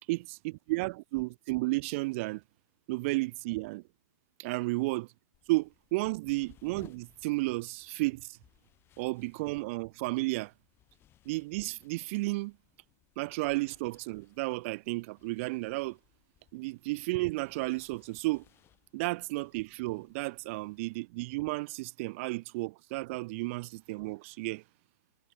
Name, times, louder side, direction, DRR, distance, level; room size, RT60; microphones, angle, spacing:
voice 1, 0.1-2.4 2.9-3.8 4.4-5.1 5.5-8.4 9.0-10.5 11.2-12.5 13.2-16.0 16.5-18.4 18.9-24.6, right 23 dB, 40° right, 1.3 m, -33 dB
sound 1, 5.3-20.9, left 12 dB, 20° left, 6.5 m, -65 dB
hypercardioid pair, 140°, 11 cm